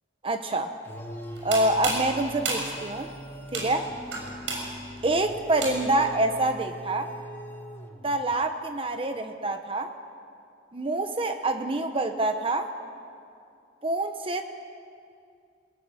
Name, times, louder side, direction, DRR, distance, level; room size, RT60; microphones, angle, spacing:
voice 1, 0.2-0.7 1.4-3.1 3.5-3.9 5.0-7.1 8.0-9.9 10.7-12.7 13.8-14.4, right 2 dB, 30° right, 7 dB, 1.0 m, -26 dB
sound 1, 0.8-8.3, equal, 15° left, 2.0 m, -42 dB
sound 2, 1.2-6.1, right 3 dB, 90° right, 6.6 m, -33 dB
22.5 x 18.0 x 9.8 m, 2.4 s
head